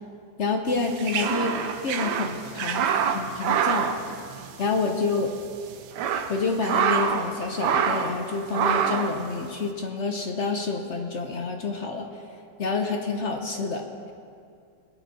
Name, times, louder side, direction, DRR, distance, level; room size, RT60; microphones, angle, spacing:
voice 1, 0.4-1.6 1.8-3.9 4.6-5.3 6.3-12.1 12.6-13.8, left 4 dB, 50° left, 3 dB, 0.9 m, -28 dB
sound 1, 0.8-4.8 5.1-5.2 5.7-7.3 7.6-8.2 8.5-9.2, right 7 dB, 75° right, 1.3 m, -26 dB
19.0 x 9.1 x 4.1 m, 2.3 s
omnidirectional pair, 1.9 m